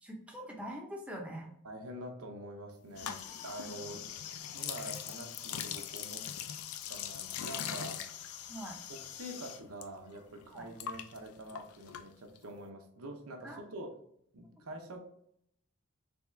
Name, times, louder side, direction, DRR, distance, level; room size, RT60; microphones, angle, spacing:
voice 1, 0.0-1.5 3.0-3.1 8.5-8.8 10.5-10.7 13.4-13.6, equal, 5° right, 0 dB, 0.6 m, -43 dB
voice 2, 1.6-4.1 4.5-6.3 6.9-8.0 8.9-13.9 14.3-15.0, right 1 dB, 80° right, 3 dB, 0.7 m, -46 dB
sound 1, 2.9-9.9 10.1-12.5, left 9 dB, 75° left, 0.4 m, -41 dB
3.5 x 3.4 x 3.2 m, 0.71 s
head